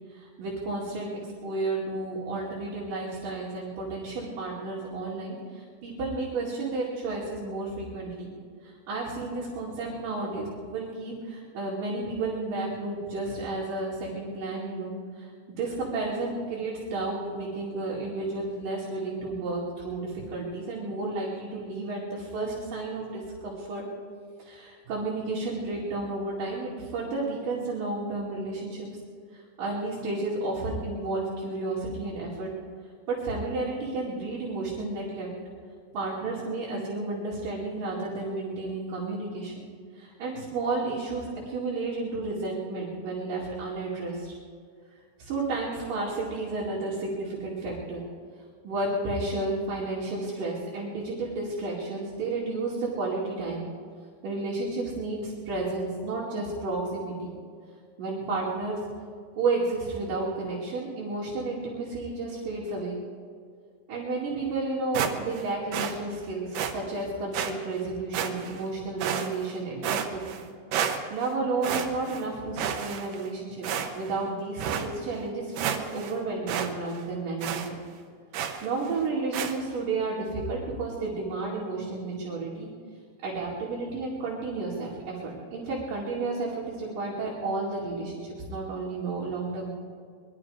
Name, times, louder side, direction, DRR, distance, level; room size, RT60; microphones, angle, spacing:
voice 1, 0.1-8.3 8.6-23.8 24.4-28.9 29.6-32.5 33.1-35.3 35.9-39.6 40.0-44.3 45.2-48.0 48.6-53.6 54.2-57.3 58.0-58.9 59.3-63.0 63.9-70.2 71.1-73.7 73.9-77.8 78.6-82.7 83.2-89.7, right 3 dB, 60° right, -6 dB, 3.9 m, -32 dB
sound 1, 64.9-65.4 65.7-66.0 66.5-66.7 67.3-67.5 68.1-68.6 69.0-69.5 69.8-70.4 70.7-71.3 71.6-72.2 72.6-73.3 73.6-74.1 74.6-74.9 75.3-75.4 75.6-76.1 76.5-76.7 77.0-77.1 77.4-77.7 78.3-78.7 79.3-79.5, right 8 dB, 85° right, 3.0 m, -30 dB
21.5 x 12.5 x 5.0 m, 2.1 s
omnidirectional pair, 4.4 m